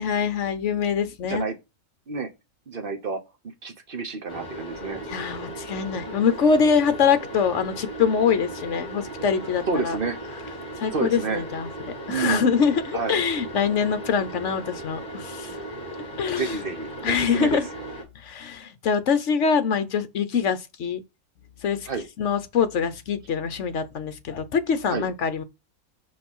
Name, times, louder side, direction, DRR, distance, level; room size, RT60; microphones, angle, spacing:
voice 1, 0.0-1.5 5.1-10.0 10.8-11.7 12.1-15.6 16.2-16.6 17.0-17.6 18.2-21.0 21.6-21.9 22.2-25.4, left 6 dB, 60° left, 1.1 m, -24 dB
voice 2, 2.7-3.2 3.6-5.0 9.7-10.2 10.9-11.4 12.1-12.5 12.9-13.3 16.4-17.6 21.9-22.1 24.9-25.1, right 4 dB, 40° right, 1.3 m, -29 dB
sound 1, 4.3-18.0, right 1 dB, 30° left, 2.7 m, -37 dB
5.3 x 5.1 x 5.5 m
omnidirectional pair, 1.5 m